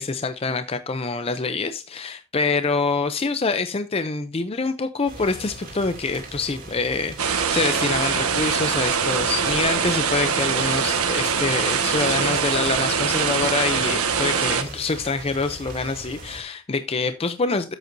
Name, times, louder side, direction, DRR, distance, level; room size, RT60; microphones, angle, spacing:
voice 1, 0.0-17.7, left 4 dB, 25° left, 0.5 m, -26 dB
sound 1, 5.1-16.4, right 2 dB, 40° right, 2.8 m, -39 dB
sound 2, 7.2-14.6, right 6 dB, 90° right, 1.4 m, -23 dB
13.0 x 8.0 x 2.6 m
head